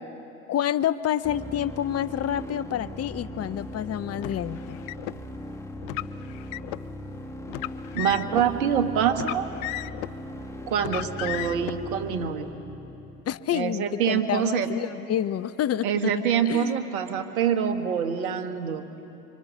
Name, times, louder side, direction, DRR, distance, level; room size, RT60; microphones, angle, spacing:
voice 1, 0.5-4.8 13.3-16.2 16.5-16.8, left 10 dB, 35° left, 15 dB, 0.8 m, -28 dB
sound 1, 1.2-13.2, left 1 dB, 5° left, 2.0 m, -39 dB
Car, 4.2-5.2 5.8-6.8 7.5-8.5 9.1-10.2 10.8-11.7, left 20 dB, 65° left, 0.6 m, -34 dB
voice 2, 7.9-9.5 10.7-12.5 13.5-14.7 15.8-18.9, right 8 dB, 75° right, 8 dB, 1.7 m, -25 dB
26.5 x 25.0 x 6.4 m, 3.0 s
hypercardioid pair, 75°, 43 cm